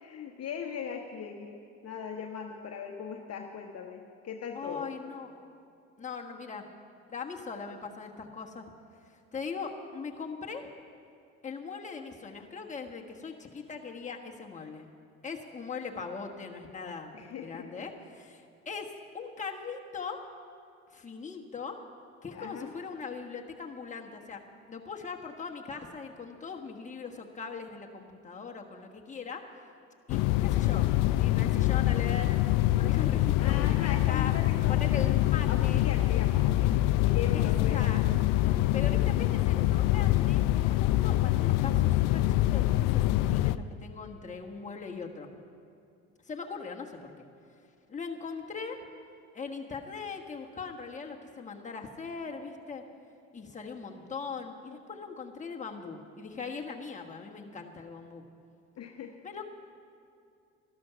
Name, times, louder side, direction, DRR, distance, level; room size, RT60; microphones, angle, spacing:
voice 1, 0.0-1.6 1.8-4.9 17.1-17.6 22.3-22.7 33.4-37.9 58.8-59.1, left 7 dB, 40° left, 2 dB, 1.0 m, -39 dB
voice 2, 4.5-5.4 6.0-6.7 7.1-8.7 9.0-10.7 11.4-14.8 15.2-17.1 17.4-20.2 20.9-21.8 22.2-24.4 24.7-29.4 30.1-32.3 32.7-34.3 34.7-35.8 37.3-38.0 38.4-45.3 46.2-47.3 47.9-48.8 49.3-52.8 53.3-58.2 59.2-59.5, left 5 dB, 20° left, 1 dB, 1.4 m, -40 dB
sound 1, 30.1-43.6, left 15 dB, 60° left, 0.5 m, -25 dB
12.5 x 12.0 x 5.9 m, 2.5 s
hypercardioid pair, 75°, 37 cm